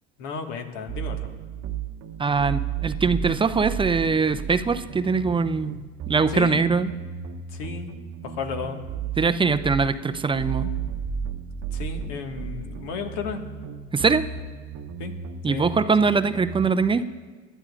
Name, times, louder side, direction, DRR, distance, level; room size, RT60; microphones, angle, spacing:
voice 1, 0.2-1.3 6.3-6.7 7.5-7.9 8.2-8.8 11.7-13.4 15.0-15.2 15.4-15.9, left 5 dB, 70° left, 4 dB, 1.8 m, -33 dB
sound 1, 0.9-16.8, right 7 dB, 50° right, 0.9 m, -34 dB
voice 2, 2.2-5.8 6.1-6.9 9.2-10.7 13.9-14.2 15.4-17.0, right 4 dB, 15° right, 11 dB, 0.5 m, -22 dB
26.5 x 12.5 x 2.5 m, 1.5 s
hypercardioid pair, 75°, 35 cm